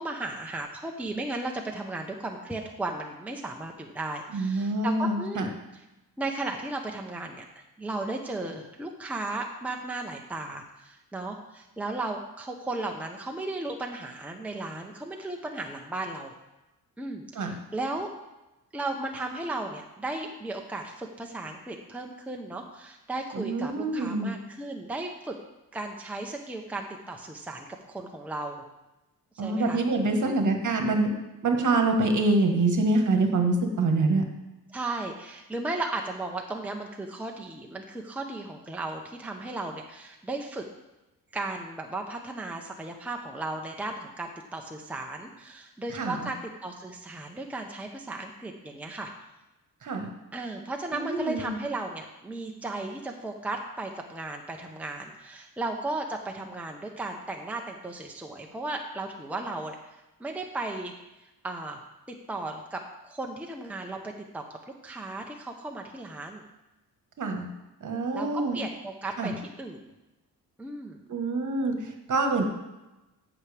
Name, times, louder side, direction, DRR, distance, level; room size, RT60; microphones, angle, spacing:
voice 1, 0.0-5.5 6.2-7.4 7.8-16.3 17.0-18.1 18.7-25.3 25.7-28.6 29.3-29.8 30.2-30.6 34.7-40.6 41.3-49.1 50.3-59.8 60.2-60.9 61.4-61.8 62.1-64.6 64.8-66.4 68.1-68.3 68.5-69.3 69.6-69.8 70.6-71.0, right 2 dB, 5° right, 1 dB, 0.9 m, -35 dB
voice 2, 4.3-5.5 17.3-17.5 23.3-24.4 29.4-31.1 31.4-34.2 45.9-46.3 49.8-50.1 50.9-51.6 67.2-67.5 67.8-68.6 69.2-69.3 71.1-72.4, right 2 dB, 50° right, 4 dB, 1.5 m, -26 dB
13.0 x 6.0 x 3.5 m, 1.0 s
cardioid pair, 90°, 39 cm